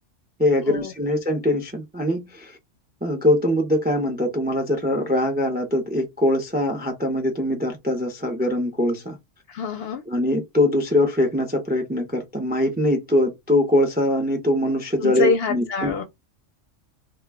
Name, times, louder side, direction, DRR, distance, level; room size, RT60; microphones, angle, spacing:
voice 1, 0.4-2.6 3.0-9.2 10.1-15.9, left 1 dB, 15° right, 0.3 m, -22 dB
voice 2, 9.5-10.0 15.0-16.0, left 4 dB, 65° left, 0.7 m, -25 dB
2.2 x 2.2 x 3.3 m
omnidirectional pair, 1.3 m